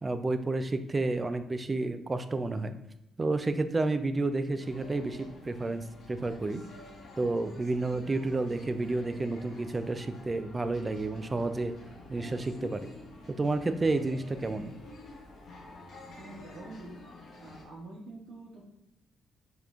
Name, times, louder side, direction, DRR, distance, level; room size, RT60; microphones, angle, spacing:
voice 1, 0.0-2.7 3.2-6.6 7.2-11.7 12.1-12.9 13.4-14.7, right 2 dB, 25° right, 10 dB, 0.3 m, -30 dB
sound 1, 4.6-17.7, left 2 dB, 60° left, 1.0 m, -49 dB
voice 2, 16.2-16.9 17.4-18.6, right 2 dB, 70° right, -7 dB, 1.0 m, -46 dB
5.1 x 3.0 x 2.5 m, 0.86 s
cardioid pair, 90°, 0 cm